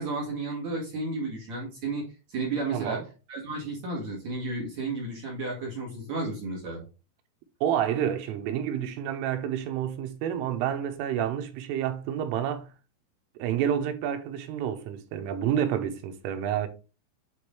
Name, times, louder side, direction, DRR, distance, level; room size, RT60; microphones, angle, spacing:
voice 1, 0.0-3.0 3.3-6.8, right 3 dB, 50° right, 2.2 m, -33 dB
voice 2, 2.7-3.0 7.6-12.7 13.4-16.7, right 9 dB, 85° right, 3.4 m, -29 dB
9.0 x 4.3 x 3.2 m
omnidirectional pair, 5.7 m